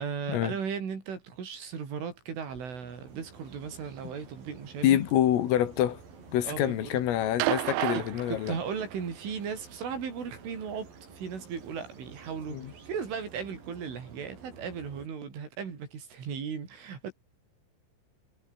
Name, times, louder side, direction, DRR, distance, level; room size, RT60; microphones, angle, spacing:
voice 1, 0.0-5.0 6.4-7.0 8.0-17.1, right 6 dB, 70° right, 7.6 m, -37 dB
sound 1, 2.4-15.1, right 5 dB, 45° right, 6.7 m, -51 dB
voice 2, 4.8-6.0 6.3-8.6 12.5-12.7, left 11 dB, 80° left, 4.8 m, -26 dB
sound 2, 7.4-9.0 10.3-10.4, right 22 dB, 90° right, 3.3 m, -31 dB
omnidirectional pair, 5.9 m